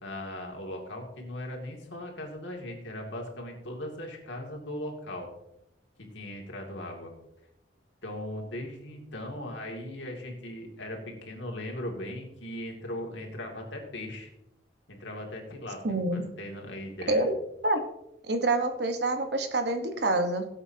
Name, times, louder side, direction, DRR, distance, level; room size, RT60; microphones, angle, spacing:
voice 1, 0.0-5.3 6.0-7.1 8.0-14.3 14.9-17.3, left 1 dB, 75° left, 1 dB, 2.5 m, -38 dB
voice 2, 15.8-16.3 17.1-17.3 17.6-17.8 18.3-20.5, right 2 dB, 60° right, 6 dB, 1.3 m, -27 dB
17.0 x 7.9 x 2.9 m, 0.82 s
head